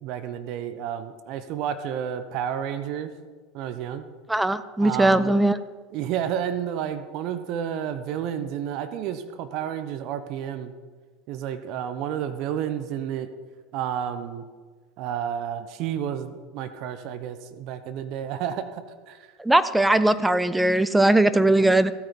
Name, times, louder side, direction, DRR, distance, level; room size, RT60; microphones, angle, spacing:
voice 1, 0.0-3.1 3.5-4.0 4.8-5.4 5.9-10.7 11.3-13.3 13.7-14.4 15.0-19.3, right 9 dB, 55° right, 11 dB, 0.9 m, -31 dB
voice 2, 4.3-5.6 19.4-21.9, right 1 dB, 5° right, 13 dB, 0.7 m, -19 dB
14.5 x 9.1 x 5.3 m, 1.5 s
hypercardioid pair, 80°, 0 cm